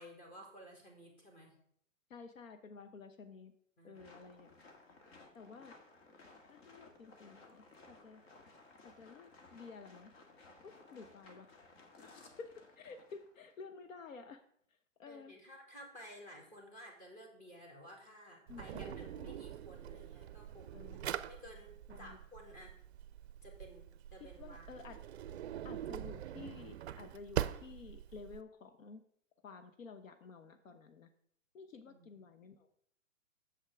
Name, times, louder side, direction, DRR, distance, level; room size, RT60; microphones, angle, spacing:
voice 1, 0.0-1.6 3.8-4.0 15.1-21.0 21.3-22.7 23.4-24.9 31.9-32.1, equal, 20° left, 1 dB, 2.0 m, -54 dB
voice 2, 2.1-3.5 3.8-4.5 5.3-5.7 6.5-8.2 8.8-10.1 10.6-11.5 12.0-14.4 15.0-15.3 18.5-19.3 20.7-21.2 21.9-22.2 24.2-25.0 25.6-29.0 29.4-31.1 31.5-32.7, left 4 dB, 75° left, 8 dB, 0.9 m, -52 dB
sound 1, 3.9-13.6, left 3 dB, 50° left, 1.8 m, -59 dB
Drawer open or close, 18.5-28.4, right 11 dB, 55° right, 0.5 m, -43 dB
8.3 x 7.3 x 3.5 m, 0.65 s
hypercardioid pair, 135°, 40 cm